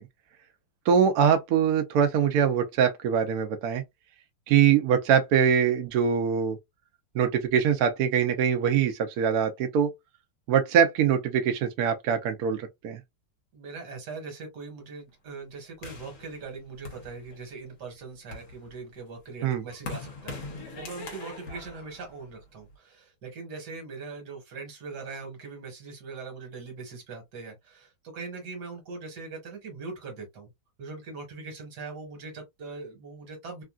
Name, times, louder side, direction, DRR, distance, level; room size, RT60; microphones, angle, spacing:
voice 1, 0.9-3.8 4.5-6.6 7.1-9.9 10.5-13.0 19.4-19.6, right 8 dB, 75° right, 0.8 m, -23 dB
voice 2, 13.5-20.4 20.8-30.5 30.8-33.6, right 4 dB, 55° right, 1.8 m, -41 dB
sound 1, 15.8-17.6 18.1-22.7, left 3 dB, 50° left, 1.2 m, -42 dB
3.4 x 2.5 x 2.3 m
omnidirectional pair, 2.2 m